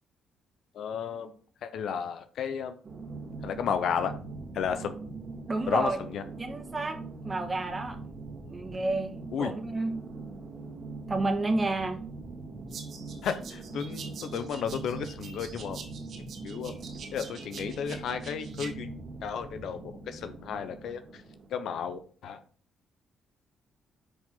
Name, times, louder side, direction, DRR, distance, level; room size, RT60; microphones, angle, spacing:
voice 1, 0.7-1.3 1.6-2.8 3.4-4.1 4.5-5.0 5.7-6.2 9.3-9.5 13.2-15.8 16.4-16.7 17.1-18.9 19.2-21.2 21.5-22.4, left 7 dB, 75° left, 9 dB, 0.9 m, -33 dB
sound 1, 2.8-21.5, right 3 dB, 45° right, 2.0 m, -42 dB
voice 2, 5.5-6.0 6.4-7.0 7.2-8.0 8.5-9.1 9.4-9.9 11.1-12.0, right 2 dB, 25° right, 5 dB, 1.8 m, -30 dB
sound 2, 12.7-18.7, right 5 dB, 65° right, 2.5 m, -46 dB
9.9 x 5.2 x 3.9 m, 0.42 s
cardioid pair, 90°, 0 cm